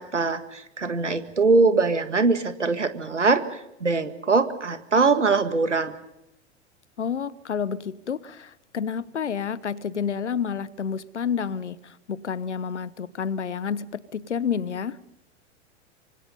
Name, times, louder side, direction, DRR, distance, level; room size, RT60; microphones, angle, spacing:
voice 1, 0.0-5.9, right 4 dB, 80° right, 1.9 m, -22 dB
voice 2, 7.0-15.0, left 7 dB, 75° left, 1.1 m, -29 dB
26.0 x 25.0 x 5.5 m
figure-of-eight pair, 90°, 35 cm